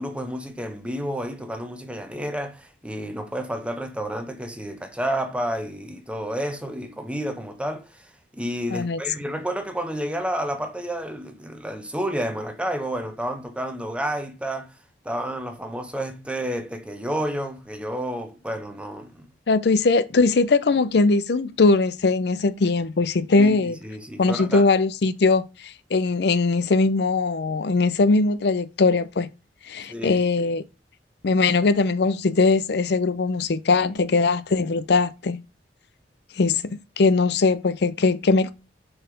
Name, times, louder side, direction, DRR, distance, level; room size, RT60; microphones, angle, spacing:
voice 1, 0.0-14.7 15.0-19.3 23.4-24.6 29.9-30.5, equal, 5° right, 1.0 m, -30 dB
voice 2, 19.5-23.8 24.2-29.3 29.6-30.6 31.2-35.4 36.3-38.5, left 3 dB, 65° left, 0.5 m, -20 dB
5.5 x 4.8 x 5.0 m
head